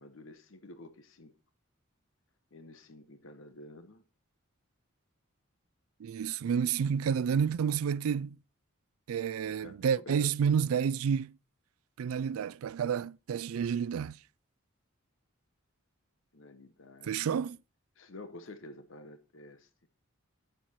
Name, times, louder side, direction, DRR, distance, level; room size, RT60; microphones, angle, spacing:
voice 1, 0.0-1.3 2.5-4.0 9.5-9.7 10.1-10.3 16.3-17.4 18.0-19.7, left 2 dB, 65° left, 0.9 m, -50 dB
voice 2, 6.0-8.4 9.1-11.3 12.0-14.2 17.0-17.6, right 7 dB, 80° right, 0.3 m, -30 dB
9.0 x 7.6 x 4.2 m
head